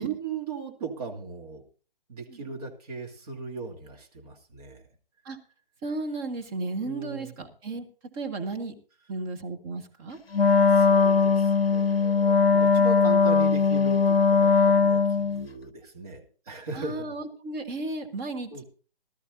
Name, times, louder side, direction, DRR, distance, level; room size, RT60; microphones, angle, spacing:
voice 1, 0.0-1.6 2.1-4.9 6.8-7.3 10.3-17.1 18.5-18.6, right 5 dB, 40° right, 2 dB, 2.7 m, -38 dB
voice 2, 5.8-7.9 8.1-8.7 9.1-10.2 16.7-18.6, right 3 dB, 20° right, 3 dB, 1.6 m, -34 dB
Wind instrument woodwind instrument, 10.3-15.5, left 5 dB, 85° left, 0.5 m, -20 dB
18.5 x 13.0 x 2.7 m, 0.38 s
figure-of-eight pair, 135°, 29 cm